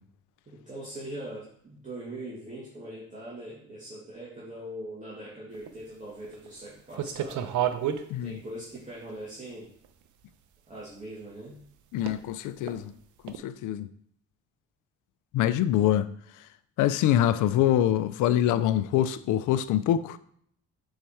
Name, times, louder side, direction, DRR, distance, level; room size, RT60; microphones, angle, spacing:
voice 1, 0.5-7.6 8.2-9.7 10.7-11.6, right 1 dB, 25° right, 2.2 m, -41 dB
sound 1, 5.5-5.7 6.2-6.5 6.9-8.0 8.8-8.9 9.8-9.9 12.0-12.2 12.6-12.7 13.3-13.4, right 10 dB, 75° right, 0.7 m, -30 dB
voice 2, 11.9-12.9 13.2-13.9 15.3-16.1 16.8-20.2, left 11 dB, 85° left, 0.5 m, -24 dB
6.5 x 4.7 x 4.4 m
cardioid pair, 90°, 30 cm